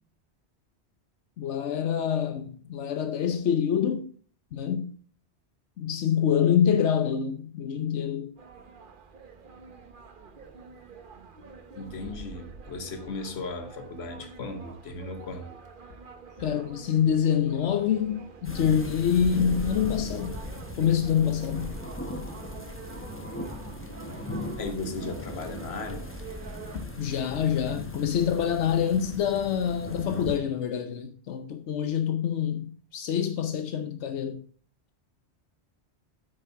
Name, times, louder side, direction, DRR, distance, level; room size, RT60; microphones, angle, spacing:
voice 1, 1.4-4.1 4.5-4.9 5.8-8.3 16.4-20.4 20.8-21.7 27.0-34.4, left 8 dB, 85° left, 1.1 m, -26 dB
sound 1, 8.4-26.9, right 5 dB, 50° right, 1.1 m, -47 dB
voice 2, 11.7-15.6 24.6-26.1 26.7-26.9, left 3 dB, 70° left, 1.3 m, -36 dB
sound 2, 18.4-30.4, left 1 dB, 10° left, 1.0 m, -38 dB
8.5 x 6.5 x 4.6 m
omnidirectional pair, 1.2 m